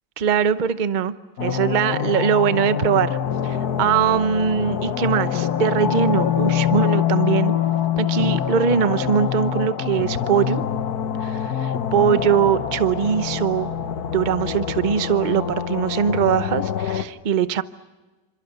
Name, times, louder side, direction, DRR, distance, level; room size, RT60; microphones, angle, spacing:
voice 1, 0.2-1.1 1.4-3.2 3.4-7.5 8.0-10.6 11.2-13.7 14.1-17.6, right 8 dB, 40° right, 12 dB, 0.7 m, -21 dB
sound 1, 1.4-17.0, left 9 dB, 65° left, 1.6 m, -25 dB
28.0 x 26.5 x 6.8 m, 1.2 s
omnidirectional pair, 1.9 m